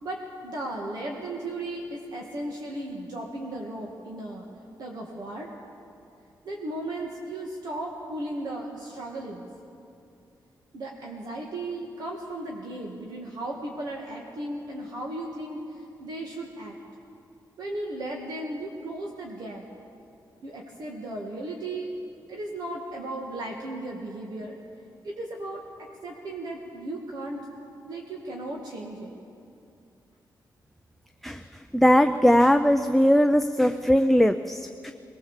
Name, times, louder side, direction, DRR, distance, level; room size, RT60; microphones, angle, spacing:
voice 1, 0.0-4.4 4.8-5.5 6.4-9.4 10.7-16.7 17.6-19.6 20.4-21.9 22.3-24.6 25.0-25.6 26.0-27.4 27.8-29.2, right 1 dB, 60° right, -1 dB, 2.1 m, -35 dB
voice 2, 31.7-34.9, equal, 5° left, 6 dB, 0.4 m, -20 dB
22.5 x 20.0 x 7.3 m, 2.6 s
wide cardioid pair, 165°, 8 cm